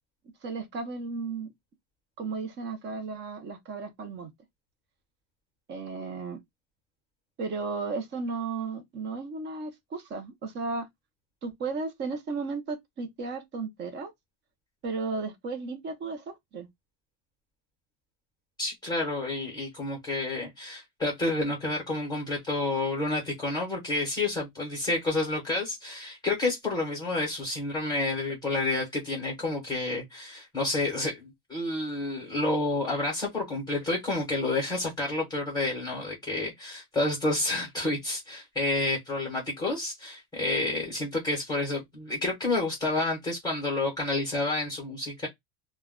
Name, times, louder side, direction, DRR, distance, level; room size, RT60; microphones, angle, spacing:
voice 1, 0.4-1.5 2.2-4.3 5.7-6.4 7.4-10.9 11.4-14.1 14.8-16.7, right 4 dB, 25° right, 0.5 m, -34 dB
voice 2, 18.6-45.3, left 2 dB, 10° left, 0.7 m, -29 dB
2.1 x 2.1 x 3.4 m
cardioid pair, 175°, 45 cm